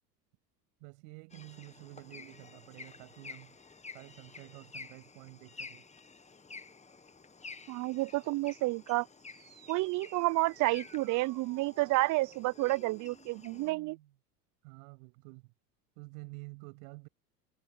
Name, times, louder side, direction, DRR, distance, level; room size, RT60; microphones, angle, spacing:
voice 1, 0.8-3.6 3.9-5.8 14.6-15.5 16.0-17.1, right 32 dB, 65° right, 7.6 m, -50 dB
sound 1, 1.3-13.7, left 4 dB, 15° left, 1.7 m, -51 dB
voice 2, 7.7-9.1 9.7-14.0, right 20 dB, 40° right, 0.6 m, -30 dB
sound 2, 9.2-14.2, right 13 dB, 80° right, 2.6 m, -57 dB
hypercardioid pair, 80°, 47 cm